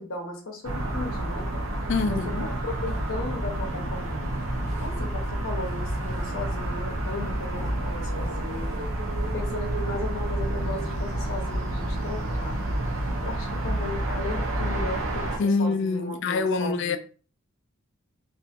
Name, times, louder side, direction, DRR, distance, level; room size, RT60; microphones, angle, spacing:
voice 1, 0.0-1.5 2.0-4.4 4.8-8.7 9.3-12.6 13.2-17.0, left 3 dB, 80° left, 0.8 m, -36 dB
sound 1, 0.6-15.4, right 1 dB, 90° right, 0.7 m, -29 dB
voice 2, 1.9-2.5 15.4-17.0, left 4 dB, 60° left, 0.3 m, -25 dB
2.7 x 2.6 x 2.4 m
head